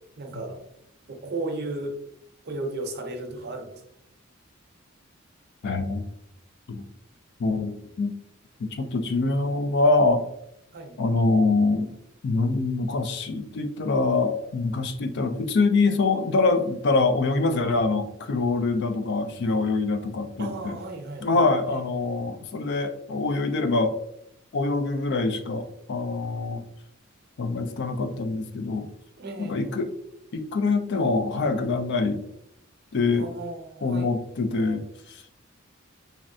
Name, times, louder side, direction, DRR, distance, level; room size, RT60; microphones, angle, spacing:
voice 1, 0.2-0.6 1.1-2.0 2.4-3.8 10.7-11.0 20.4-21.8 29.2-29.8 33.2-34.1, right 2 dB, 50° right, 3 dB, 0.6 m, -35 dB
voice 2, 5.6-6.0 6.7-6.9 7.4-8.1 8.6-10.3 11.0-11.9 12.2-20.8 21.2-24.0 24.5-26.7 27.4-28.9 29.4-29.9 30.3-32.2 32.9-33.3 33.8-35.3, left 3 dB, 55° left, 8 dB, 0.4 m, -24 dB
3.1 x 2.6 x 2.6 m, 0.76 s
head